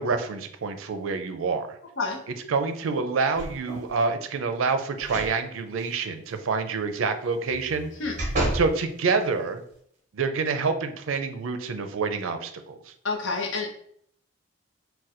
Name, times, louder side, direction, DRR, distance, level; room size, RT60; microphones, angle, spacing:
voice 1, 0.0-1.8 2.5-7.9 8.5-9.6 10.1-12.9, right 4 dB, 85° right, 8 dB, 0.4 m, -27 dB
sound 1, 3.3-3.9 5.0-5.4 5.8-5.9 7.5-8.7 9.3-9.4, right 1 dB, 35° right, 0.8 m, -30 dB
voice 2, 13.0-13.7, left 3 dB, 80° left, 2 dB, 0.6 m, -28 dB
4.1 x 2.2 x 2.5 m, 0.66 s
head